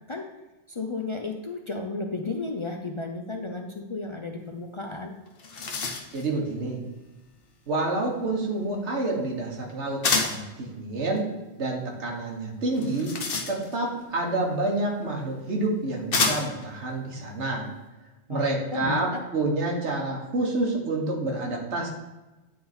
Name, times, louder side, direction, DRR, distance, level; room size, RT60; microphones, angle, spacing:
voice 1, 0.7-5.1 18.3-19.2, left 3 dB, 40° left, 3 dB, 0.4 m, -33 dB
sound 1, 4.9-5.0 5.3-6.3 10.0-10.5 12.7-13.9 15.0-15.1 16.1-16.7, left 4 dB, 60° left, 1.0 m, -28 dB
voice 2, 6.1-6.8 7.7-11.2 11.6-13.1 13.5-17.7 18.3-21.9, right 2 dB, 85° right, 0 dB, 1.7 m, -28 dB
9.1 x 3.8 x 4.3 m, 1.1 s
omnidirectional pair, 1.1 m